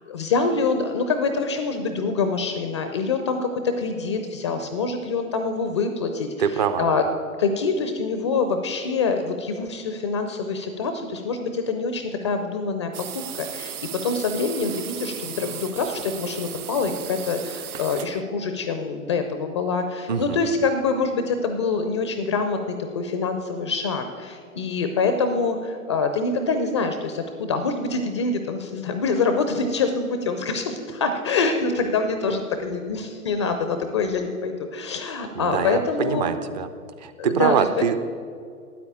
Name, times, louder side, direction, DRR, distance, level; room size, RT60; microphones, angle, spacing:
voice 1, 0.1-7.0 7.4-22.6 22.9-36.3 37.2-37.5, left 4 dB, 20° left, 7 dB, 0.4 m, -25 dB
voice 2, 6.4-6.9 20.1-20.4 35.4-36.7 37.0-38.1, right 7 dB, 30° right, 10 dB, 0.5 m, -24 dB
sound 1, 12.9-18.2, right 10 dB, 75° right, 0.6 m, -36 dB
9.4 x 8.4 x 8.6 m, 2.3 s
figure-of-eight pair, 115°, 44 cm